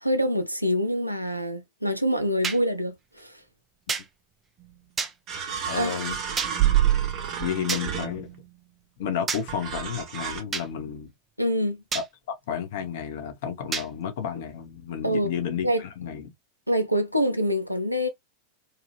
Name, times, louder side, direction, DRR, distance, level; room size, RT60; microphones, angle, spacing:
voice 1, 0.0-3.4 5.8-5.9 11.4-11.8 15.0-15.3 15.6-15.8 16.7-18.1, equal, 90° right, 0.6 m, -25 dB
sound 1, 2.4-2.6 3.9-4.1 5.0-5.1 6.4-6.5 7.7-7.8 9.3-9.4 10.5-10.7 11.9-12.1 13.7-13.9, right 5 dB, 20° right, 0.5 m, -28 dB
sound 2, 4.6-4.7 5.3-8.5 9.5-10.4, right 11 dB, 35° right, 0.9 m, -27 dB
voice 2, 5.7-6.2 7.4-8.3 9.0-11.1 11.9-16.3, left 8 dB, 55° left, 0.8 m, -32 dB
2.8 x 2.3 x 3.0 m
figure-of-eight pair, 90°, 0 cm